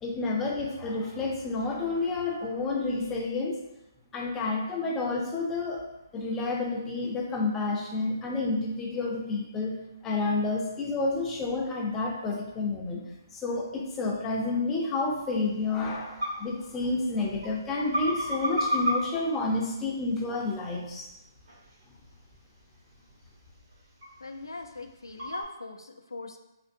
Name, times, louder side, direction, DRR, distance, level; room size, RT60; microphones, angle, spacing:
voice 1, 0.0-3.6 4.1-5.8 6.1-9.8 10.0-13.0 13.3-21.1, left 3 dB, 15° left, -1 dB, 0.5 m, -30 dB
sound 1, 15.1-25.4, equal, 60° right, 1.3 m, -36 dB
voice 2, 24.2-26.4, left 3 dB, 90° left, 6 dB, 0.3 m, -41 dB
3.4 x 2.5 x 2.6 m, 0.93 s
figure-of-eight pair, 140°, 2 cm